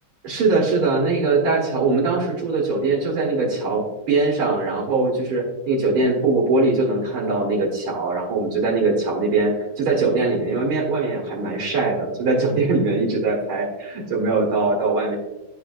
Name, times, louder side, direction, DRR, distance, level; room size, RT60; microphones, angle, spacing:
voice 1, 0.2-15.1, right 3 dB, 80° right, -3 dB, 2.4 m, -21 dB
10.5 x 4.5 x 2.5 m, 1.0 s
omnidirectional pair, 2.3 m